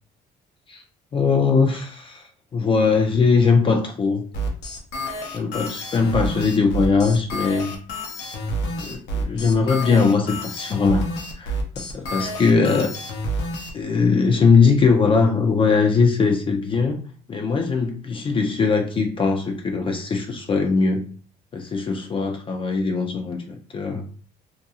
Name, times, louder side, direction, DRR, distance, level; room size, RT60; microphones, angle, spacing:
voice 1, 1.1-4.2 5.3-7.7 8.7-11.1 11.4-12.9 13.7-17.0 17.3-21.0 21.5-24.0, left 4 dB, 30° left, 3 dB, 0.4 m, -20 dB
sound 1, 4.3-13.7, right 1 dB, 90° left, 0.6 m, -29 dB
2.4 x 2.2 x 2.7 m, 0.43 s
cardioid pair, 110°, 17 cm